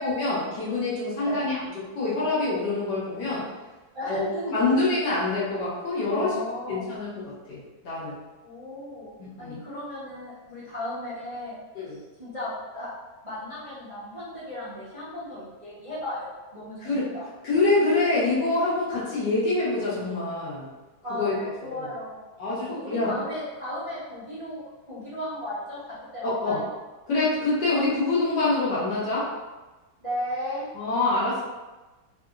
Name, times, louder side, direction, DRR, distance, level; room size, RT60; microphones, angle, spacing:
voice 1, 0.0-1.6 2.0-3.4 4.1-4.2 4.5-6.3 6.7-8.2 9.2-9.6 11.7-12.0 16.8-17.1 17.4-20.7 21.1-21.9 22.4-23.1 26.2-26.6 27.1-29.3 30.7-31.4, left 3 dB, 60° left, -8 dB, 1.3 m, -26 dB
voice 2, 3.9-4.5 6.1-7.0 8.4-11.6 12.2-12.9 13.2-17.2 21.0-22.2 22.7-26.7 30.0-30.6, left 1 dB, 35° right, -13 dB, 0.5 m, -35 dB
3.6 x 2.7 x 2.4 m, 1.2 s
omnidirectional pair, 2.3 m